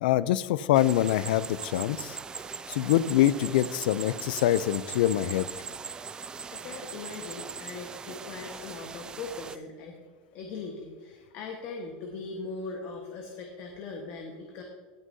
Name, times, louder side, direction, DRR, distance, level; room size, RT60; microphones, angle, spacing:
voice 1, 0.0-2.2 2.7-5.5, left 13 dB, 85° left, 18 dB, 0.4 m, -25 dB
sound 1, 0.7-9.6, right 5 dB, 15° right, 0.3 m, -40 dB
voice 2, 6.5-10.0 10.3-14.6, left 4 dB, 50° left, 2 dB, 1.3 m, -40 dB
18.5 x 6.3 x 2.7 m, 1.5 s
supercardioid pair, 145°, 5 cm